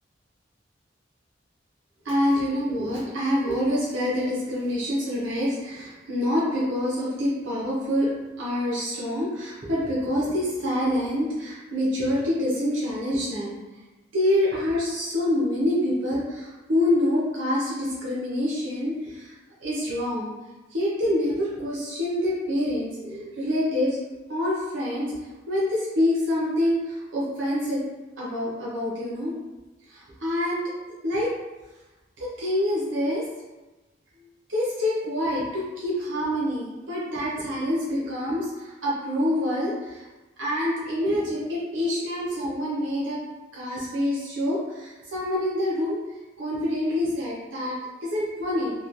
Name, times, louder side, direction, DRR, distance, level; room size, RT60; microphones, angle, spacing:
voice 1, 2.0-8.1 8.4-13.6 14.1-19.3 19.6-20.3 20.7-24.0 24.3-25.2 25.5-27.8 28.2-29.4 29.9-30.7 31.0-31.3 32.2-33.2 34.5-40.1 40.4-43.2 43.5-46.0 46.4-48.7, left 1 dB, 90° right, -7 dB, 0.7 m, -26 dB
3.0 x 2.2 x 2.4 m, 1.1 s
head